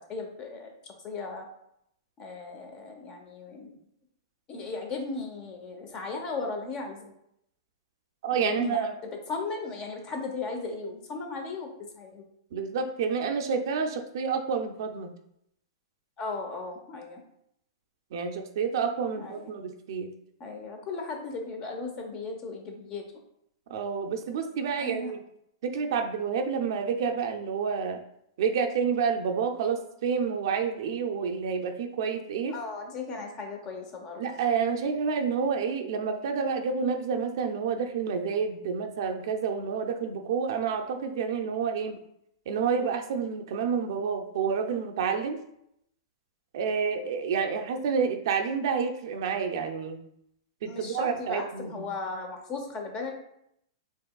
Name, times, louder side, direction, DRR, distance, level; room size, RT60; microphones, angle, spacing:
voice 1, 0.1-1.5 2.2-3.8 4.5-7.1 8.3-8.9 9.3-12.2 16.2-17.2 19.2-19.5 20.4-23.0 24.8-25.1 32.5-34.2 50.7-53.1, left 3 dB, 30° left, 3 dB, 0.8 m, -36 dB
voice 2, 8.2-8.9 12.5-15.1 18.1-20.1 23.7-25.2 25.6-28.0 28.4-32.5 34.2-42.0 42.5-45.4 46.5-50.0 50.6-51.9, right 6 dB, 65° right, 5 dB, 0.5 m, -29 dB
4.4 x 3.0 x 2.3 m, 0.75 s
hypercardioid pair, 140°, 3 cm